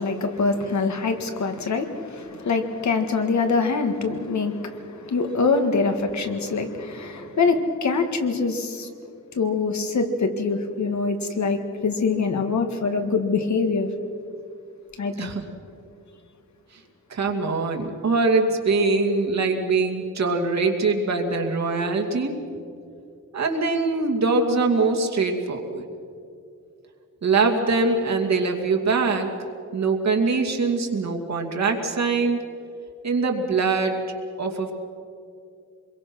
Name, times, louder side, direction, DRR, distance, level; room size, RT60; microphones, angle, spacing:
voice 1, 0.0-8.9 9.4-13.9 15.0-15.3, left 4 dB, 60° left, 6 dB, 1.9 m, -24 dB
voice 2, 17.1-22.3 23.3-25.8 27.2-29.3 29.7-32.4 33.0-34.0 34.4-34.7, right 3 dB, 55° right, 2 dB, 2.5 m, -23 dB
26.0 x 22.5 x 6.2 m, 2.5 s
wide cardioid pair, 175°, 31 cm